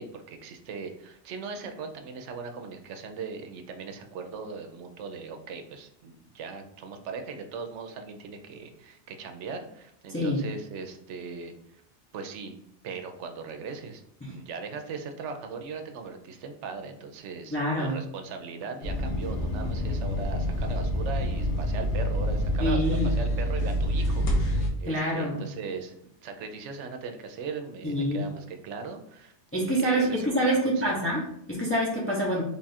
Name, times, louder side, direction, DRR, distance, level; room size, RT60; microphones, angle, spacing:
voice 1, 0.0-11.8 12.1-12.6 12.8-14.0 14.3-31.1, right 5 dB, 80° right, 6 dB, 0.9 m, -39 dB
voice 2, 10.1-10.4 14.2-14.3 17.5-18.0 22.6-23.1 24.8-25.5 27.8-28.3 29.5-32.4, equal, 15° left, -5 dB, 0.6 m, -26 dB
sound 1, 18.8-24.7, equal, 80° left, 1.1 m, -27 dB
3.5 x 2.4 x 4.1 m, 0.75 s
omnidirectional pair, 1.2 m